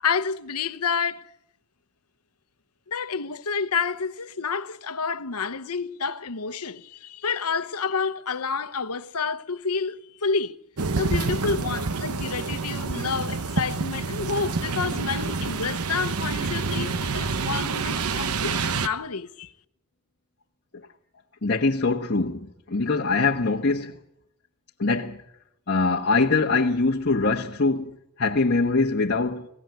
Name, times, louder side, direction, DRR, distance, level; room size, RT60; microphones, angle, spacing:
voice 1, 0.0-1.3 2.9-10.6 11.0-19.5, left 5 dB, 85° left, 1.0 m, -29 dB
sound 1, 10.8-18.9, right 4 dB, 75° right, 1.0 m, -28 dB
voice 2, 21.4-24.0 24.8-25.2 25.7-29.5, left 3 dB, 50° left, 1.3 m, -23 dB
23.5 x 17.5 x 9.5 m
head